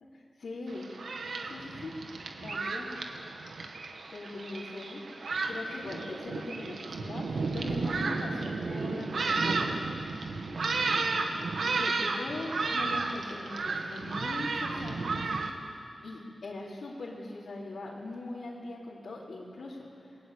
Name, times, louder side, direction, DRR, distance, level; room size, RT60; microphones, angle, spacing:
voice 1, 0.4-0.9 1.5-1.9 2.4-2.9 4.1-5.1 5.5-9.8 11.8-15.2 16.0-20.2, left 2 dB, 75° left, -7 dB, 4.1 m, -41 dB
Thunderstorm, 0.7-15.5, right 3 dB, 75° right, 2.1 m, -33 dB
29.0 x 21.5 x 8.7 m, 2.5 s
wide cardioid pair, 130°, 0 cm